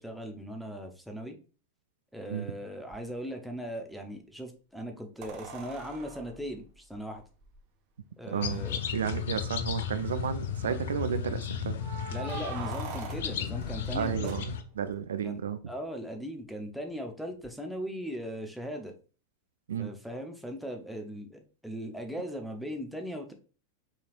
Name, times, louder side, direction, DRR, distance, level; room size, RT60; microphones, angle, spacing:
voice 1, 0.0-1.4 2.1-7.2 8.2-8.8 12.1-14.3 15.2-15.4 15.7-18.9 19.8-23.3, equal, ahead, 0.8 m, -39 dB
sound 1, 2.9-3.0 5.2-7.6 8.6-8.7 8.9-9.0 9.6-10.1 11.8-14.9 17.4-17.5, right 5 dB, 40° right, 0.9 m, -43 dB
voice 2, 8.3-8.6 8.9-11.8 13.9-15.6 19.7-19.9, right 8 dB, 65° right, 0.3 m, -32 dB
sound 2, 8.4-14.6, left 7 dB, 60° left, 0.5 m, -34 dB
5.6 x 3.3 x 2.5 m
figure-of-eight pair, 90°, 0 cm